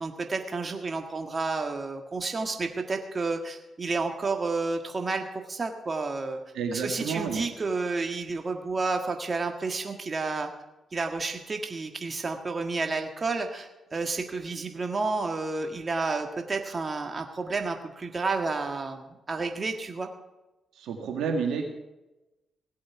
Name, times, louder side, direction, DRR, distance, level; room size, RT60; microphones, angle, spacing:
voice 1, 0.0-6.4 6.7-10.5 10.9-20.1, right 3 dB, 40° right, 5 dB, 1.6 m, -31 dB
voice 2, 6.5-7.4 20.7-21.6, right 5 dB, 75° right, 3 dB, 1.8 m, -30 dB
17.0 x 8.5 x 5.9 m, 1.0 s
hypercardioid pair, 40°, 0 cm